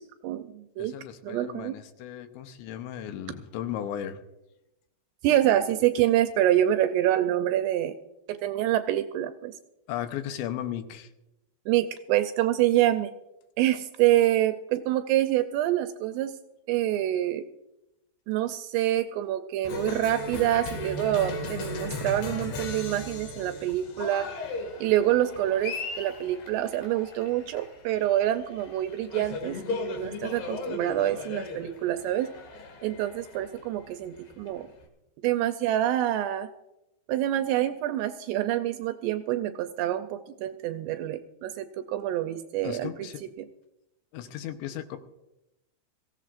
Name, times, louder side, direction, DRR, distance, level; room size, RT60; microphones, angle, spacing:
voice 1, 0.0-0.9 1.2-1.7 5.2-7.9 8.3-9.5 11.7-13.1 13.6-16.3 16.7-17.4 18.3-24.3 24.8-32.3 32.8-34.7 35.2-36.5 37.1-43.1, right 13 dB, 80° right, 9 dB, 2.6 m, -26 dB
voice 2, 0.8-4.2 9.9-11.1 42.6-43.2 44.1-45.0, left 10 dB, 80° left, 8 dB, 3.0 m, -36 dB
Cheering, 19.6-34.8, left 3 dB, 65° left, 3.9 m, -37 dB
22.5 x 16.0 x 2.5 m, 0.92 s
omnidirectional pair, 5.3 m